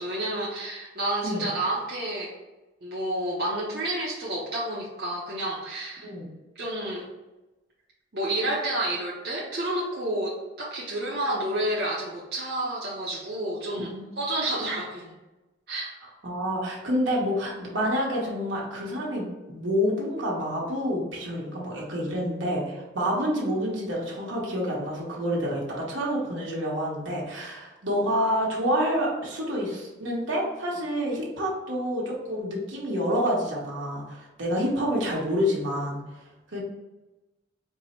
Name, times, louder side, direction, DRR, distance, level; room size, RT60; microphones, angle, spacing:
voice 1, 0.0-2.3 2.8-6.1 6.6-7.1 8.1-13.9 14.2-15.1 15.7-15.9, right 1 dB, 55° right, -6 dB, 0.7 m, -30 dB
voice 2, 16.2-36.0 36.5-36.6, equal, 80° right, -3 dB, 1.2 m, -28 dB
4.5 x 2.1 x 4.3 m, 1.1 s
head